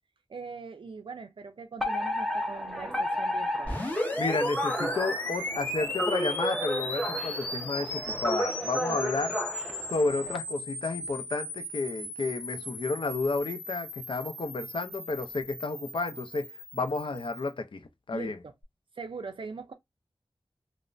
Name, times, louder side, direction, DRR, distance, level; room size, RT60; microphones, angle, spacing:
voice 1, 0.3-3.9 8.8-9.0 18.1-18.5 19.0-19.7, right 4 dB, 60° right, 0.4 m, -41 dB
Alarm, 1.8-10.4, equal, ahead, 0.6 m, -32 dB
sound 1, 3.6-17.5, left 1 dB, 20° left, 1.0 m, -37 dB
voice 2, 4.2-9.3 9.9-17.8 18.1-18.4, left 3 dB, 60° left, 0.5 m, -31 dB
3.1 x 2.0 x 2.5 m
wide cardioid pair, 55°, 10 cm